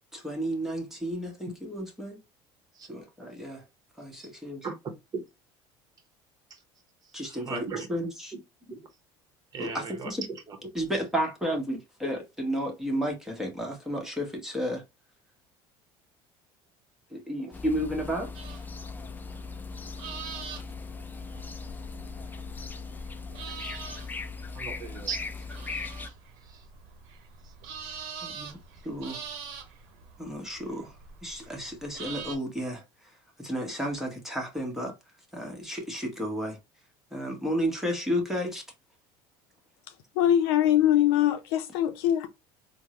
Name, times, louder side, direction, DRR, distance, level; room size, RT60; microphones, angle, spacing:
voice 1, 0.1-2.2 2.9-3.6 4.0-4.6 7.1-7.6 7.9-8.1 9.6-10.2 10.7-14.8 17.1-18.3 28.2-28.6 28.8-29.2 30.2-30.9 31.2-32.8 33.4-34.9 35.3-36.6 37.1-38.6, equal, 5° right, 1.0 m, -32 dB
voice 2, 7.0-7.9 8.3-8.9 9.5-10.6 23.7-23.8 24.5-25.2 26.4-26.7 27.4-27.8, right 5 dB, 30° right, 0.9 m, -38 dB
sound 1, 17.5-26.1, left 4 dB, 15° left, 0.3 m, -39 dB
sound 2, 18.3-32.4, right 6 dB, 75° right, 0.8 m, -44 dB
voice 3, 40.2-42.3, left 11 dB, 90° left, 0.5 m, -22 dB
3.5 x 2.0 x 2.9 m
supercardioid pair, 115°, 12 cm